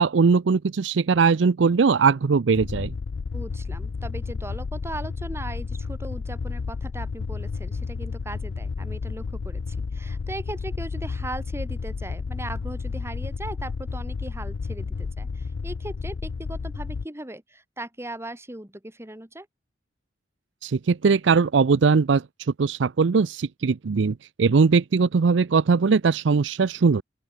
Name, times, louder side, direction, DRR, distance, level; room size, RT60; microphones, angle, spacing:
voice 1, 0.0-2.9 20.6-22.2 22.6-27.0, right 5 dB, 85° right, 0.5 m, -20 dB
sound 1, 2.5-17.0, left 4 dB, 85° left, 0.5 m, -32 dB
voice 2, 3.3-19.5, right 1 dB, 15° right, 3.0 m, -38 dB
open air
head